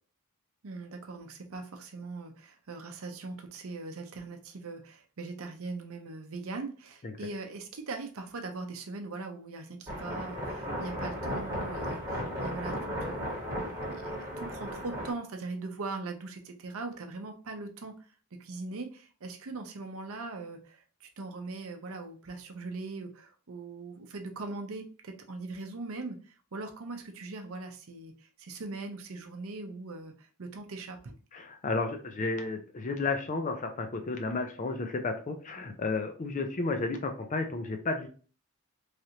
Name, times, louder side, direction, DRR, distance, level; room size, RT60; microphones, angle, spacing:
voice 1, 0.6-18.0 18.4-31.2, right 3 dB, 65° right, 5 dB, 0.6 m, -41 dB
Static radio sound from medium and shortwaves, 9.9-15.1, equal, 15° right, 1.2 m, -35 dB
voice 2, 31.3-38.1, left 3 dB, 35° left, 6 dB, 0.5 m, -32 dB
3.2 x 2.5 x 2.8 m, 0.39 s
head